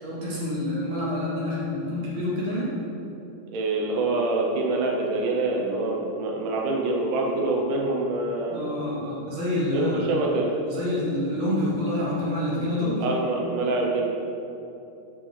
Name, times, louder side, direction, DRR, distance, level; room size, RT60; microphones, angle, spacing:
voice 1, 0.0-2.7 8.5-10.1 10.7-13.0, left 1 dB, 70° right, -7 dB, 2.7 m, -27 dB
voice 2, 3.5-8.6 9.7-10.5 13.0-14.0, right 2 dB, 85° right, -1 dB, 2.4 m, -25 dB
6.3 x 6.1 x 3.3 m, 2.9 s
omnidirectional pair, 3.7 m